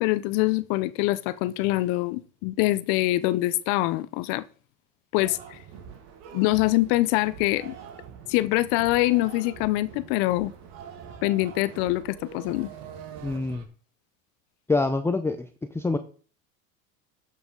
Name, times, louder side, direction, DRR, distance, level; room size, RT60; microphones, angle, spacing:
voice 1, 0.0-4.4 5.1-5.6 6.3-7.8 8.3-10.5 11.2-12.7, left 18 dB, 65° left, 0.6 m, -24 dB
sound 1, 5.2-13.7, right 7 dB, 70° right, 2.0 m, -44 dB
voice 2, 13.2-13.7 14.7-15.5 15.7-16.0, left 3 dB, 5° left, 0.5 m, -25 dB
11.5 x 5.9 x 3.8 m
supercardioid pair, 100°, 39 cm